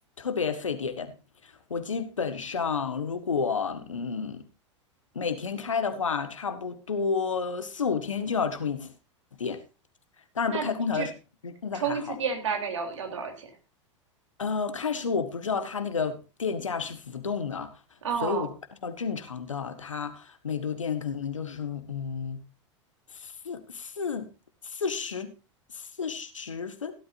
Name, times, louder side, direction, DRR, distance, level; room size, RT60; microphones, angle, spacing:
voice 1, 0.2-1.1 1.4-4.4 5.1-8.9 9.4-9.6 10.3-11.1 11.4-12.2 14.4-17.7 18.1-18.5 18.8-22.4 23.1-24.3 24.6-25.3 25.7-26.9, left 5 dB, 80° left, 1.7 m, -31 dB
voice 2, 11.8-13.5 18.0-18.5, right 6 dB, 70° right, 3.5 m, -30 dB
16.5 x 12.0 x 2.7 m
figure-of-eight pair, 90°, 16 cm